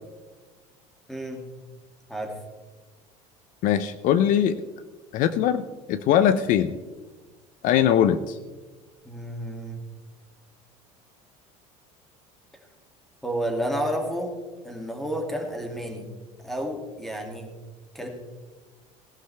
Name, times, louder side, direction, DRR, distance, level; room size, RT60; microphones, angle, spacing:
voice 1, 1.1-1.4 2.1-2.3 9.0-9.8 13.2-14.3 14.6-16.1 16.4-17.5 17.9-18.1, equal, ahead, 2 dB, 2.4 m, -30 dB
voice 2, 3.6-4.6 5.1-6.7 7.6-8.4, left 9 dB, 55° left, 12 dB, 0.6 m, -21 dB
18.5 x 11.0 x 3.4 m, 1.3 s
cardioid pair, 125°, 16 cm